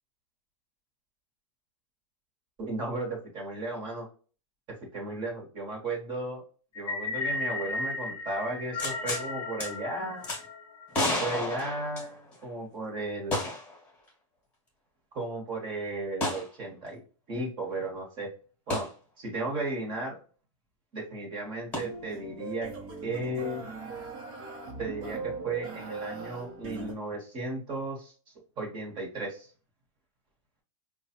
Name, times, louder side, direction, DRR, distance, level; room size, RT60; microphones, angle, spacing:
voice 1, 2.6-4.1 4.9-6.4 6.7-10.3 11.2-13.5 15.1-17.0 17.3-18.3 18.7-18.9 19.2-20.2 20.9-22.7 23.0-23.6 24.8-28.1 28.6-29.5, right 2 dB, 30° right, 0 dB, 1.5 m, -35 dB
sound 1, 6.7-11.1, left 3 dB, 30° left, 1.0 m, -35 dB
sound 2, 8.8-9.2 9.6-9.7 10.2-10.4 10.9-12.4 13.3-13.8 14.1-14.2 16.2-16.5 18.7-18.9 21.7-21.8, left 1 dB, 10° left, 1.3 m, -31 dB
sound 3, 21.7-26.9, right 4 dB, 45° right, 1.2 m, -40 dB
4.7 x 2.4 x 2.9 m, 0.38 s
supercardioid pair, 155°, 17 cm